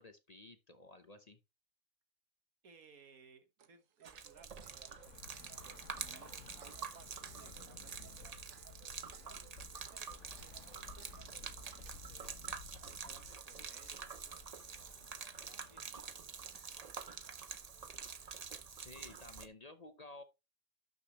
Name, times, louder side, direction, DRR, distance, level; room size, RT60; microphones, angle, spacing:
voice 1, 0.0-1.4 18.8-20.2, left 2 dB, 35° left, 0.8 m, -54 dB
voice 2, 2.6-8.4 8.8-9.4 9.9-12.3 12.8-15.0 15.5-16.5 16.9-17.5, right 5 dB, 85° right, 1.8 m, -64 dB
sound 1, 3.6-18.4, right 9 dB, 70° right, 1.4 m, -65 dB
Gurgling / Liquid, 4.0-19.5, right 6 dB, 40° right, 0.6 m, -47 dB
Bus / Traffic noise roadway noise, 4.8-17.3, left 5 dB, 60° left, 1.3 m, -57 dB
11.5 x 6.8 x 3.0 m
omnidirectional pair, 1.5 m